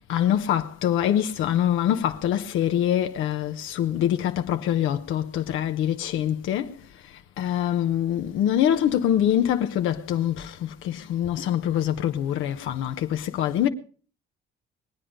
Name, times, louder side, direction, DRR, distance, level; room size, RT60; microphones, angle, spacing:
voice 1, 0.1-13.7, left 10 dB, 90° left, 0.9 m, -24 dB
21.0 x 8.7 x 5.1 m
cardioid pair, 90°, 20 cm